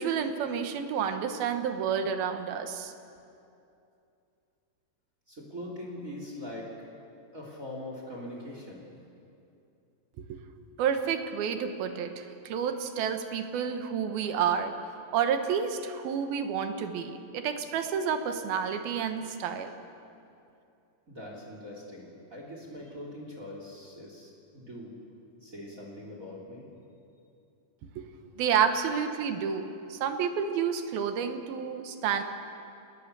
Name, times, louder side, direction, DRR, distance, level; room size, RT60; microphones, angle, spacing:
voice 1, 0.0-2.9 10.2-10.4 10.8-19.7 28.0-28.1 28.4-32.2, right 7 dB, 70° right, 7 dB, 2.9 m, -30 dB
voice 2, 5.3-6.7 7.3-8.9 21.1-25.0 25.4-26.6, left 1 dB, 20° right, -1 dB, 3.3 m, -42 dB
30.0 x 19.5 x 6.8 m, 2.6 s
omnidirectional pair, 4.7 m